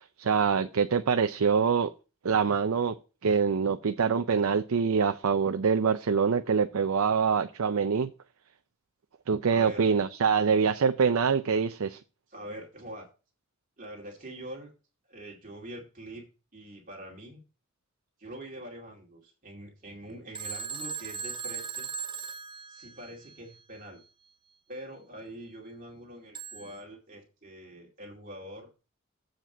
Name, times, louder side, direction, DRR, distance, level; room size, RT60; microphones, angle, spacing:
voice 1, 0.2-1.9 2.2-3.0 3.2-8.1 9.3-12.0, right 6 dB, 80° right, 0.5 m, -25 dB
voice 2, 9.5-9.8 12.3-13.1 13.8-14.7 15.1-16.3 16.5-17.4 18.2-21.9 22.7-24.0 24.7-28.7, right 1 dB, 40° right, 2.3 m, -44 dB
Telephone, 20.3-23.4 26.3-26.8, right 6 dB, 20° right, 0.7 m, -38 dB
7.5 x 5.0 x 6.6 m
head